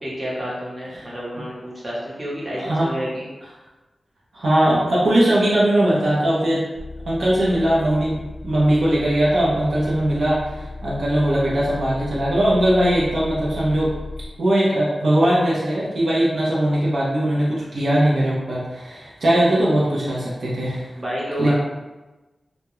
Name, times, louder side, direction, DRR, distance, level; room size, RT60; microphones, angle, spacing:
voice 1, 0.0-3.3 21.0-21.5, equal, 30° right, -6 dB, 0.8 m, -30 dB
voice 2, 2.6-2.9 4.3-6.6 7.1-13.9 14.4-20.9 21.4-21.5, right 1 dB, 75° right, -6 dB, 0.6 m, -20 dB
sound 1, 6.7-14.3, left 2 dB, 65° left, 0.4 m, -35 dB
2.2 x 2.1 x 3.0 m, 1.1 s
wide cardioid pair, 90°, 0 cm